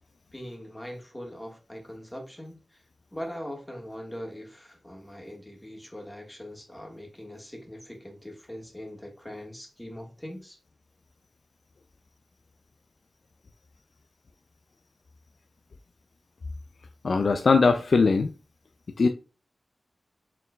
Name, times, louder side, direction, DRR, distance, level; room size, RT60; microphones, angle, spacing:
voice 1, 0.3-2.8 3.1-10.6, equal, 15° left, 1.5 m, -41 dB
voice 2, 17.0-18.3 19.0-19.1, left 4 dB, 75° left, 0.3 m, -20 dB
4.4 x 3.7 x 2.2 m
cardioid pair, 50°, 0 cm